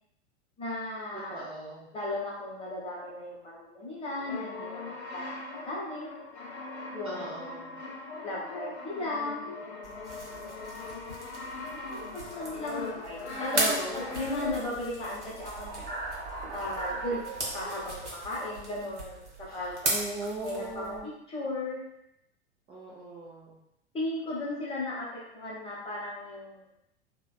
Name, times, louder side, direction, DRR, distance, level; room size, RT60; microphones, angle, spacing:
voice 1, 0.6-1.5 1.9-6.1 6.9-7.6 8.2-9.4 10.4-10.6 11.7-15.8 16.5-17.2 17.5-19.9 20.4-21.8 23.9-26.6, left 2 dB, 15° left, -6 dB, 0.9 m, -36 dB
voice 2, 1.1-1.9 7.0-7.7 13.5-14.2 19.5-21.1 22.7-23.6, right 3 dB, 15° right, -8 dB, 0.4 m, -38 dB
Brass instrument, 4.1-14.9, left 3 dB, 70° left, 0.5 m, -40 dB
sound 1, 9.8-21.0, right 1 dB, 85° right, 0.8 m, -37 dB
sound 2, 15.2-19.4, right 3 dB, 45° right, 1.1 m, -40 dB
3.2 x 2.2 x 2.3 m, 0.82 s
figure-of-eight pair, 85°, 34 cm